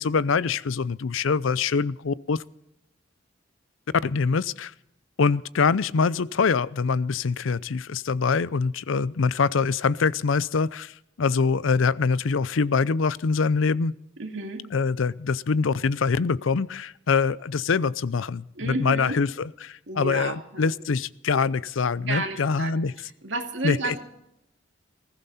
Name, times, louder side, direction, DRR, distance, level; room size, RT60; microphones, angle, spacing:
voice 1, 0.0-2.4 4.0-4.7 5.2-13.9 14.7-22.9 23.6-23.9, left 5 dB, 90° left, 19 dB, 0.5 m, -24 dB
voice 2, 14.2-14.6 18.5-19.2 19.9-20.7 22.1-22.8 23.2-24.0, right 2 dB, 70° right, 3 dB, 2.4 m, -31 dB
20.0 x 15.5 x 4.2 m, 0.79 s
head